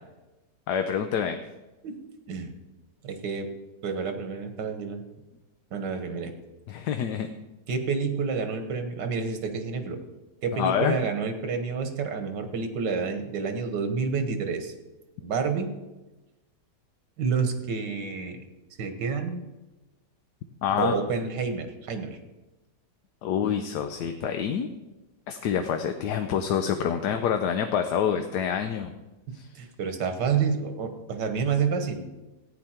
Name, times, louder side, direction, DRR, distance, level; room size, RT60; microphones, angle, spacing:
voice 1, 0.7-1.4 6.7-7.3 10.5-11.0 20.6-20.9 23.2-24.7 25.3-28.9 29.3-29.5, left 8 dB, 75° left, 7 dB, 1.3 m, -27 dB
voice 2, 3.0-3.5 3.8-5.0 5.7-6.3 7.7-10.0 10.4-14.7 15.2-15.7 17.2-18.4 18.8-19.4 20.8-22.2 29.3-32.1, right 5 dB, 85° right, 7 dB, 1.9 m, -29 dB
14.5 x 9.4 x 4.4 m, 1.1 s
omnidirectional pair, 1.8 m